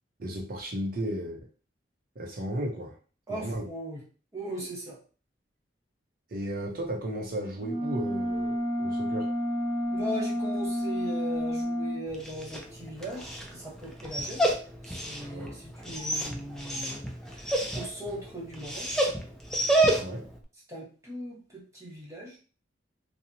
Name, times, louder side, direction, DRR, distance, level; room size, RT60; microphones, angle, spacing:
voice 1, 0.2-1.4 2.2-2.9 3.3-3.7 6.3-9.3 15.3-15.5 20.0-20.2, right 1 dB, 50° right, 0 dB, 0.6 m, -34 dB
voice 2, 3.3-4.0 4.3-5.0 9.9-14.4 14.8-18.9 20.7-22.4, equal, 15° right, -5 dB, 1.0 m, -39 dB
sound 1, 7.6-12.0, equal, 35° left, 0.7 m, -30 dB
Dog, 12.1-20.4, right 1 dB, 5° left, 0.3 m, -30 dB
2.9 x 2.0 x 2.6 m, 0.38 s
head